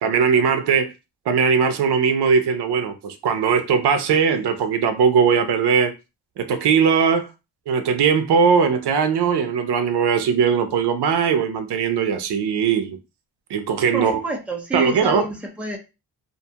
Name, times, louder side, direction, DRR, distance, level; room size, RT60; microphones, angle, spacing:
voice 1, 0.0-0.9 1.3-5.9 6.4-7.3 7.7-13.0 13.5-14.2 14.7-15.3, right 6 dB, 90° right, 0.5 m, -19 dB
voice 2, 13.9-15.8, right 3 dB, 5° right, 0.5 m, -27 dB
2.5 x 2.3 x 2.7 m
wide cardioid pair, 115°, 39 cm